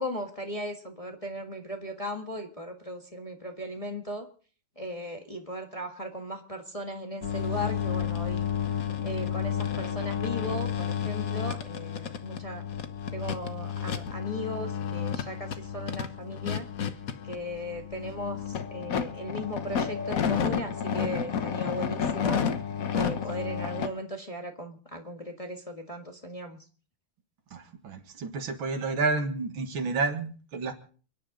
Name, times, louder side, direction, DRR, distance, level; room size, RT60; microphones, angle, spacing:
voice 1, 0.0-4.3 4.8-8.5 9.0-12.7 13.1-16.7 17.2-22.4 22.9-26.6, equal, 20° left, 3 dB, 1.4 m, -37 dB
sound 1, 7.2-23.9, left 8 dB, 50° left, 1.3 m, -31 dB
voice 2, 27.5-30.7, right 3 dB, 75° right, 6 dB, 2.4 m, -30 dB
29.5 x 10.5 x 3.9 m, 0.41 s
omnidirectional pair, 2.3 m